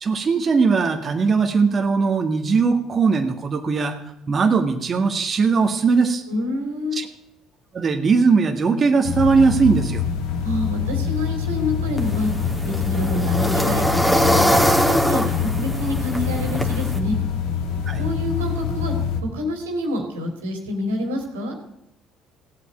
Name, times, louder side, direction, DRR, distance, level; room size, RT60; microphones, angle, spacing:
voice 1, 0.0-4.0 4.3-6.2 6.9-7.1 7.7-10.0 17.9-18.0, right 4 dB, 40° right, 4 dB, 1.7 m, -19 dB
voice 2, 6.3-7.0 10.4-12.3 12.6-17.2 18.0-21.6, left 1 dB, 85° right, 4 dB, 2.9 m, -27 dB
sound 1, 9.0-19.2, left 7 dB, 70° left, 2.0 m, -25 dB
sound 2, 12.0-17.0, equal, 5° left, 2.6 m, -22 dB
16.0 x 8.5 x 9.1 m, 0.82 s
hypercardioid pair, 60°, 0 cm